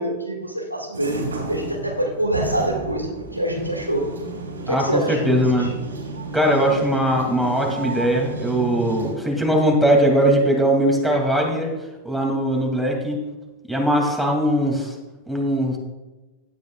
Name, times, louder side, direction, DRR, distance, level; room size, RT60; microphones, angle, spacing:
voice 1, 0.0-4.1 4.7-5.7, right 1 dB, 90° right, 0 dB, 1.9 m, -25 dB
sound 1, 0.9-9.2, right 3 dB, 75° right, 2.0 m, -32 dB
voice 2, 4.7-5.7 6.3-11.7 12.0-13.2 13.7-15.0 15.3-15.8, right 1 dB, ahead, 0 dB, 2.5 m, -20 dB
16.0 x 10.5 x 2.3 m, 1.1 s
figure-of-eight pair, 90°, 0 cm